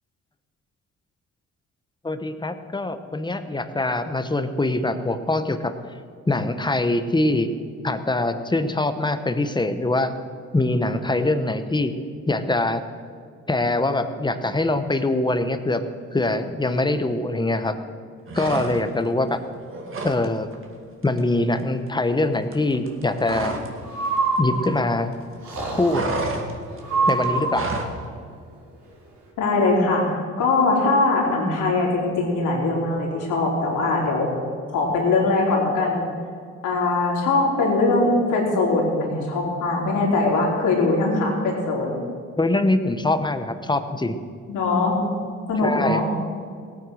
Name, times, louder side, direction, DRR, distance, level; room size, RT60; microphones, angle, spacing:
voice 1, 2.0-5.7 6.3-7.5 7.8-10.1 10.5-11.9 12.3-12.8 13.5-15.8 16.1-17.7 18.3-19.4 20.0-20.5 21.0-23.5 24.4-25.2 25.7-26.1 27.1-27.7 42.4-44.2 45.6-46.0, left 2 dB, 15° left, 9 dB, 1.1 m, -23 dB
sound 1, 18.3-19.1 19.4-20.2 20.5-20.7 21.0-23.8 24.0-25.1 25.4-28.0, right 2 dB, 45° right, 2.3 m, -31 dB
Breathing, 23.8-25.0 25.4-26.1 26.8-27.9, right 3 dB, 70° right, 4.8 m, -25 dB
voice 2, 29.4-30.0 30.4-34.3 34.7-36.0 36.6-41.9 44.5-45.0 45.5-46.1, left 3 dB, 85° left, -2 dB, 4.0 m, -21 dB
17.5 x 9.2 x 6.4 m, 2.1 s
cardioid pair, 90°, 30 cm